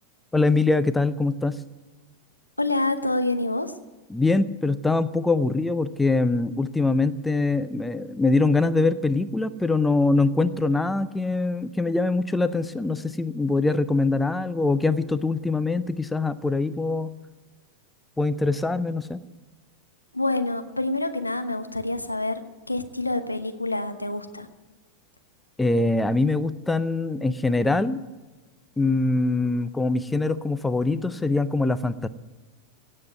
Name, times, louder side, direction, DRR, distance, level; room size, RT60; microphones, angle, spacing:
voice 1, 0.3-1.6 4.1-17.1 18.2-19.2 25.6-28.0 28.8-32.1, left 3 dB, 10° left, 14 dB, 0.6 m, -23 dB
voice 2, 2.6-3.7 20.1-22.4 22.7-24.5, left 2 dB, 85° left, 8 dB, 1.0 m, -27 dB
17.5 x 7.7 x 9.4 m, 1.2 s
figure-of-eight pair, 90°, 0 cm